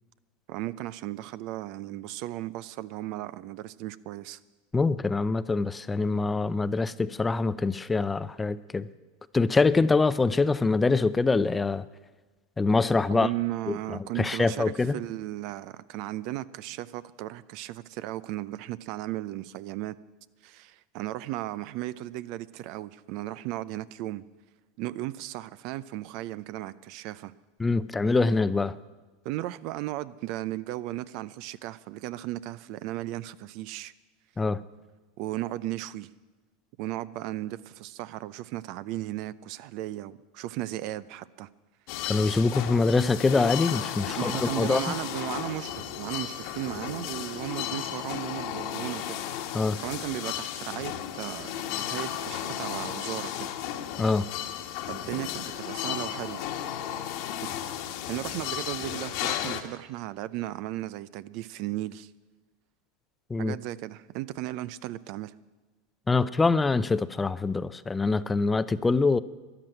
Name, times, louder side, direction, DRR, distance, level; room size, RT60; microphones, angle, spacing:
voice 1, 0.5-4.4 13.1-20.0 20.4-24.2 24.8-27.3 29.2-33.9 35.2-36.1 36.8-41.5 44.1-49.2 49.8-53.6 54.9-56.4 57.4-57.6 58.1-62.1 63.4-65.3, right 15 dB, 60° right, 17 dB, 0.5 m, -35 dB
voice 2, 4.7-8.9 9.3-11.8 12.6-13.3 13.7-15.0 27.6-28.7 34.4-34.6 42.1-44.9 49.5-49.8 54.0-54.3 63.3-63.6 66.1-69.2, left 3 dB, 15° left, 15 dB, 0.6 m, -24 dB
sound 1, 41.9-59.6, left 11 dB, 65° left, 1.5 m, -34 dB
13.5 x 11.0 x 9.0 m, 1.2 s
hypercardioid pair, 105°, 0 cm